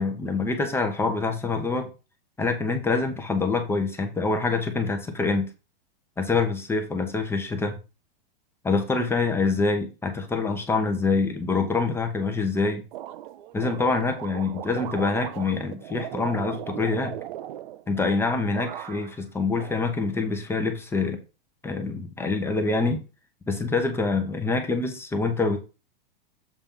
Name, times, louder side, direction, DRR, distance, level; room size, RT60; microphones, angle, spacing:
voice 1, 0.0-1.9 2.4-5.5 6.2-7.8 8.6-12.8 13.5-17.2 17.9-21.2 21.6-23.0 23.5-25.6, left 3 dB, 10° left, 4 dB, 0.9 m, -25 dB
sound 1, 12.9-18.2 18.5-19.2 19.6-20.4, right 12 dB, 55° right, 0.7 m, -38 dB
7.3 x 3.5 x 5.4 m, 0.31 s
hypercardioid pair, 145°, 29 cm